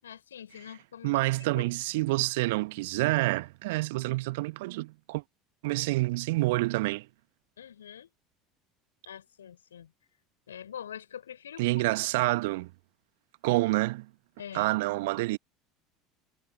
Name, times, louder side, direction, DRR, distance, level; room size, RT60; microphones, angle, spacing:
voice 1, 0.0-1.1 1.5-1.7 7.6-8.1 9.1-9.9 10.5-12.0 14.4-14.7, left 9 dB, 75° left, 5.5 m, -44 dB
voice 2, 1.0-5.2 5.6-7.1 11.6-12.7 13.4-14.1 14.5-15.4, right 21 dB, 60° right, 1.6 m, -28 dB
figure-of-eight pair, 70°, 0 cm